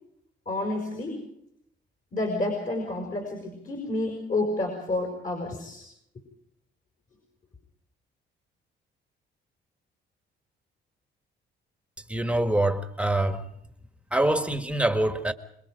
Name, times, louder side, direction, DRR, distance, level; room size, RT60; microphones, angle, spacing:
voice 1, 0.5-1.2 2.1-5.8, left 2 dB, 45° left, 5.7 m, -29 dB
voice 2, 12.1-13.4 14.1-15.3, right 1 dB, 5° right, 1.7 m, -24 dB
26.0 x 22.0 x 5.2 m
cardioid pair, 90°, 20 cm